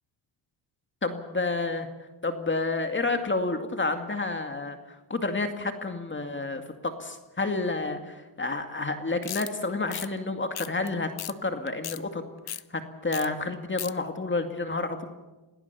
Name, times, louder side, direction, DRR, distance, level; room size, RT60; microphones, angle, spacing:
voice 1, 1.0-1.9 2.2-4.8 5.1-11.1 11.4-12.2 12.7-15.1, left 3 dB, 25° left, 7 dB, 2.3 m, -30 dB
sound 1, 9.2-9.5 9.9-10.1 10.5-10.9 11.2-11.3 11.7-12.0 12.5-12.6 13.1-13.3 13.5-13.9, left 11 dB, 50° left, 0.9 m, -35 dB
27.5 x 18.0 x 7.0 m, 1.1 s
cardioid pair, 90°, 48 cm